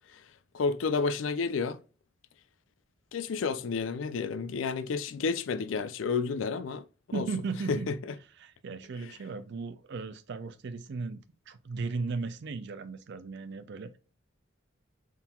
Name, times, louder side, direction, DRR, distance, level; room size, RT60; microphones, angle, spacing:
voice 1, 0.5-1.8 3.1-6.8 7.1-7.3 7.7-8.0 9.0-9.1, left 4 dB, 80° left, 0.4 m, -30 dB
voice 2, 7.1-7.9 8.4-14.0, right 4 dB, 60° right, 0.5 m, -36 dB
4.3 x 3.7 x 2.3 m
head